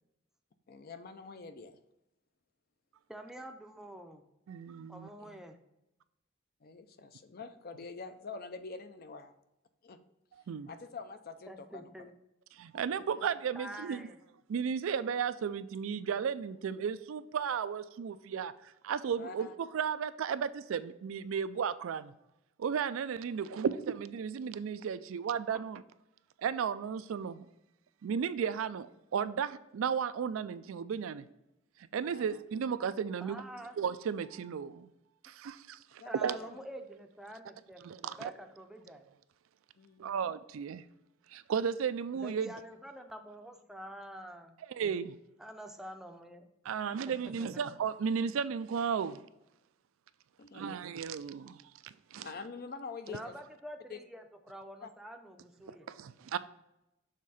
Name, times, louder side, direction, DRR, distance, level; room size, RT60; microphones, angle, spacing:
voice 1, 0.7-1.8 5.2-5.4 6.6-9.3 9.8-10.0 10.7-12.1 13.2-13.3 19.2-19.5 32.0-32.3 36.0-36.6 39.8-40.1 50.4-50.8 52.2-53.3 53.9-54.0 54.8-54.9, left 4 dB, 50° left, 0.5 m, -46 dB
voice 2, 3.1-4.2 4.9-5.6 11.5-12.1 13.6-14.2 25.5-25.6 33.2-33.7 36.1-39.1 42.1-44.6 45.4-46.5 47.1-47.7 53.1-55.9, equal, ahead, 0.5 m, -47 dB
voice 3, 4.5-5.1 10.5-10.7 12.6-14.0 14.5-18.5 18.8-22.1 22.6-25.8 26.4-27.4 28.0-28.9 29.1-31.2 31.9-33.4 33.8-34.9 35.4-35.6 36.2-36.4 37.8-38.3 40.0-40.8 41.3-42.5 44.8-45.1 46.7-49.2 50.6-51.5 52.1-52.2 56.0-56.4, right 7 dB, 85° right, 0.4 m, -34 dB
6.5 x 3.6 x 4.2 m
head